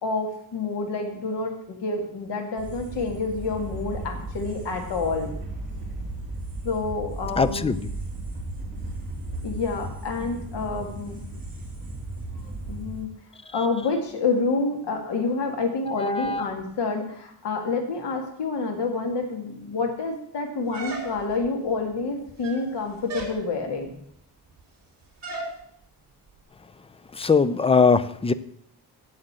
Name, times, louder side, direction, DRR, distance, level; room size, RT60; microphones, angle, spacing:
voice 1, 0.0-5.3 6.6-7.7 9.4-11.2 12.7-13.1 13.5-23.9, left 3 dB, 90° left, 4 dB, 2.4 m, -28 dB
sound 1, 2.6-13.0, right 2 dB, 20° right, 3.5 m, -35 dB
voice 2, 7.4-7.8 16.0-16.4 27.2-28.3, left 5 dB, 15° left, 14 dB, 0.4 m, -21 dB
sound 2, 20.7-21.5 22.3-22.7 23.1-23.4 25.2-25.5, right 2 dB, 40° right, 3.3 m, -34 dB
8.0 x 7.8 x 7.5 m, 0.69 s
wide cardioid pair, 140°, 40 cm